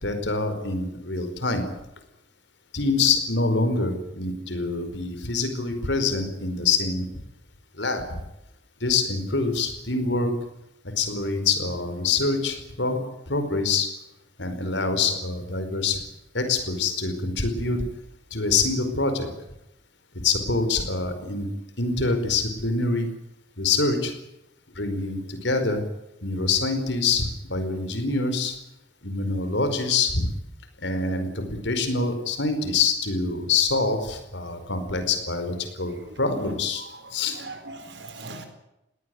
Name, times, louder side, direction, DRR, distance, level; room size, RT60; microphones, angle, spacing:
voice 1, 0.0-1.7 2.7-7.1 7.8-8.0 8.8-10.3 11.0-13.0 13.3-13.9 14.4-16.0 16.3-17.8 18.3-19.3 20.2-21.5 21.8-23.1 23.6-24.1 24.8-25.8 26.2-28.5 29.0-30.3 30.8-36.8 37.1-37.4, left 4 dB, 85° left, 8 dB, 4.9 m, -25 dB
voice 2, 36.8-38.5, right 3 dB, 75° right, 7 dB, 4.4 m, -41 dB
21.0 x 18.0 x 9.7 m, 0.87 s
head